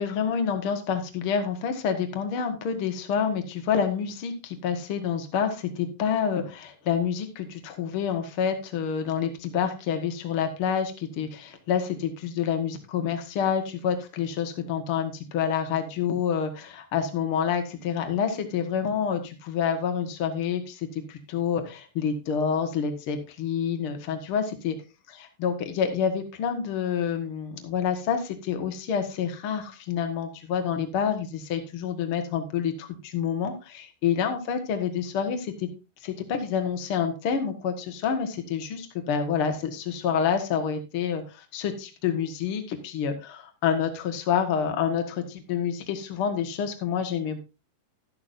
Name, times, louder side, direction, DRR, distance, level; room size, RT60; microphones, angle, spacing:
voice 1, 0.0-24.7 25.2-35.7 36.0-47.4, left 7 dB, 70° left, 6 dB, 1.2 m, -28 dB
12.5 x 11.0 x 2.6 m, 0.29 s
omnidirectional pair, 4.9 m